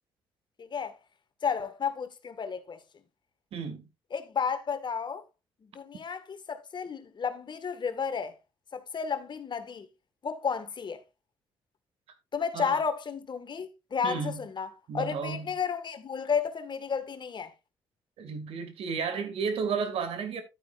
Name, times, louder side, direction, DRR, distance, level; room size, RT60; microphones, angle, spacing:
voice 1, 0.6-1.0 1.4-2.8 4.1-5.2 5.7-8.3 8.7-9.9 10.2-11.0 12.3-14.7 14.9-17.5, left 6 dB, 45° left, 1.7 m, -32 dB
voice 2, 3.5-3.8 12.5-12.8 14.0-14.4 14.9-15.5 18.2-20.4, right 5 dB, 70° right, 2.2 m, -32 dB
11.5 x 9.5 x 2.5 m
supercardioid pair, 55°, 10 cm